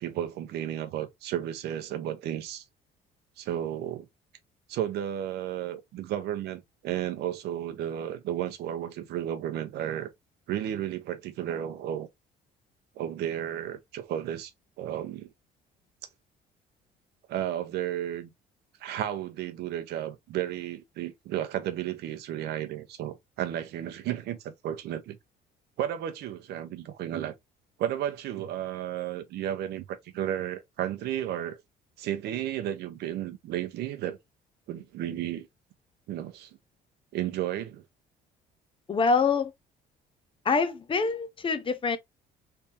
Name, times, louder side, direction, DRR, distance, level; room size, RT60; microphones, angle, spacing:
voice 1, 0.0-2.6 3.4-4.0 4.7-10.1 10.5-12.1 13.0-14.5 14.8-15.3 17.3-18.3 18.8-24.4 24.6-25.2 25.8-27.3 27.8-31.6 32.0-34.2 34.7-35.5 36.1-36.5 37.1-37.8, right 11 dB, 75° right, 0.9 m, -33 dB
voice 2, 38.9-39.5 40.4-42.0, left 4 dB, 30° left, 0.7 m, -25 dB
3.5 x 3.3 x 2.8 m
cardioid pair, 110°, 17 cm